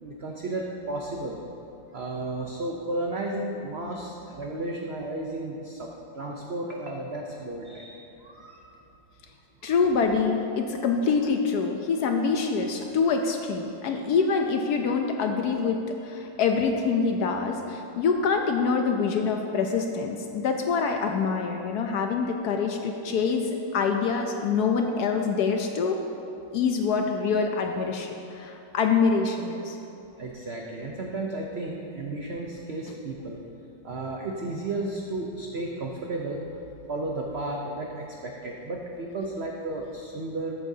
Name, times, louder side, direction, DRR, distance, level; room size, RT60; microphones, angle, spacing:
voice 1, 0.0-1.4 1.9-8.7 9.6-9.7 13.9-14.0 30.2-33.4 33.8-36.4 36.9-40.5, right 2 dB, 70° right, 0 dB, 0.6 m, -33 dB
voice 2, 9.6-26.0 26.5-29.8, left 5 dB, 70° left, 4 dB, 1.0 m, -25 dB
13.5 x 8.6 x 2.7 m, 2.8 s
omnidirectional pair, 2.0 m